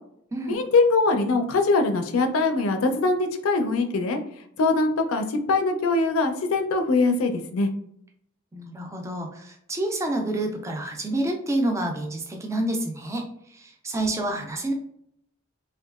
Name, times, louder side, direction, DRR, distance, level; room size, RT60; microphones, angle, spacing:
voice 1, 0.5-4.2 4.6-7.7, left 3 dB, 80° left, 6 dB, 0.4 m, -22 dB
voice 2, 8.5-14.7, right 1 dB, 15° right, 2 dB, 0.3 m, -28 dB
2.8 x 2.2 x 2.3 m, 0.71 s
head